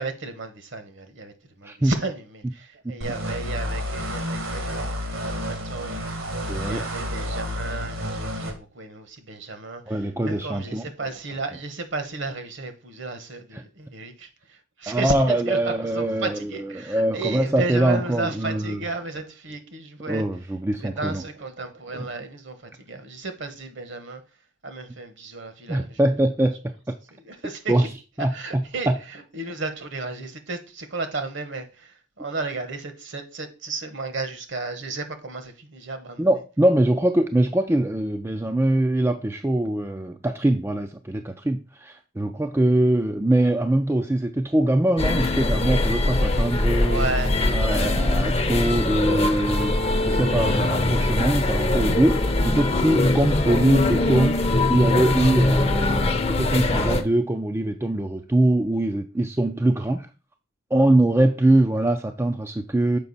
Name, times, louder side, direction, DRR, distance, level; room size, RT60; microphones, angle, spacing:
voice 1, 0.0-6.0 6.6-20.2 20.7-24.2 24.6-26.0 27.1-27.9 28.2-36.3 46.8-48.0, right 3 dB, 55° right, 1.1 m, -33 dB
sound 1, 3.0-8.5, equal, 75° right, 1.6 m, -30 dB
voice 2, 6.5-6.9 9.9-10.8 13.5-13.6 14.9-18.8 20.1-21.2 21.9-22.1 25.7-27.0 27.7-27.9 28.2-29.0 36.2-47.1 47.5-60.1 60.7-63.0, right 1 dB, 10° right, 0.4 m, -23 dB
sound 2, 45.0-57.0, left 2 dB, 30° left, 0.7 m, -22 dB
6.8 x 5.2 x 4.0 m
head